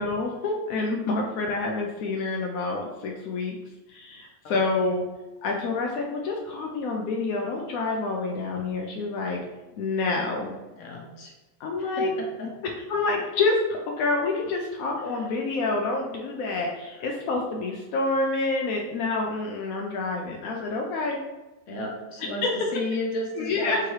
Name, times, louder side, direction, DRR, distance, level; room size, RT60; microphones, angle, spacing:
voice 1, 0.0-3.6 3.9-5.0 5.4-9.4 9.8-10.5 11.6-12.1 12.9-21.2 22.4-22.7 23.4-23.8, left 3 dB, 85° left, 0 dB, 1.0 m, -27 dB
voice 2, 10.8-11.3 11.8-12.5 15.1-15.3 21.7-22.4 22.7-23.9, left 2 dB, 65° left, 0 dB, 1.3 m, -33 dB
3.6 x 3.0 x 4.6 m, 1.1 s
omnidirectional pair, 1.5 m